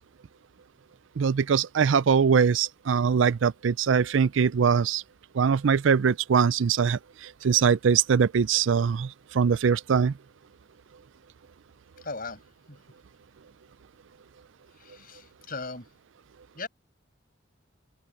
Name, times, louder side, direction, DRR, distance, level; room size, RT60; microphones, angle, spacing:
voice 1, 1.2-5.0 5.3-10.1, right 6 dB, 75° right, 0.4 m, -22 dB
voice 2, 12.0-12.4 12.7-12.8 14.7-15.9 16.5-16.7, left 3 dB, 45° left, 7.3 m, -38 dB
open air
head